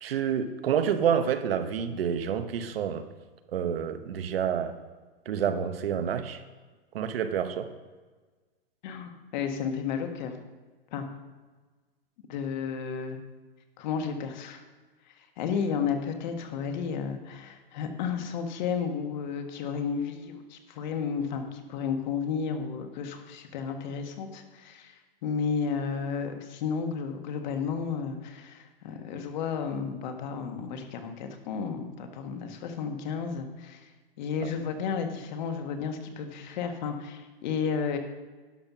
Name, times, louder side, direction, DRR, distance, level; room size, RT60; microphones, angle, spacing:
voice 1, 0.0-3.0 3.5-4.7 5.2-6.4 6.9-7.7 34.4-34.5, right 8 dB, 80° right, 9 dB, 1.2 m, -28 dB
voice 2, 8.8-10.3 10.9-11.0 12.3-13.2 13.8-14.6 15.4-24.9 25.2-33.9 34.2-38.0, left 6 dB, 50° left, 5 dB, 1.6 m, -32 dB
11.5 x 5.7 x 6.1 m, 1.3 s
hypercardioid pair, 160°, 29 cm